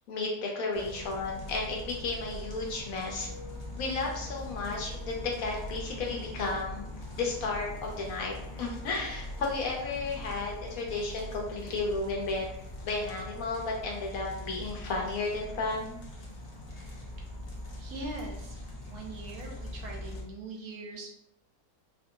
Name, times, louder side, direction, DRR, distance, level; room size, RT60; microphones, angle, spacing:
voice 1, 0.1-3.3 3.8-6.9 7.2-12.5 12.8-16.0, left 3 dB, 70° left, 0 dB, 1.0 m, -33 dB
sound 1, 0.7-20.2, left 1 dB, 55° left, 0.4 m, -42 dB
voice 2, 17.8-18.5 18.8-21.1, right 2 dB, 70° right, 0 dB, 1.2 m, -41 dB
4.2 x 2.6 x 2.6 m, 0.76 s
omnidirectional pair, 1.6 m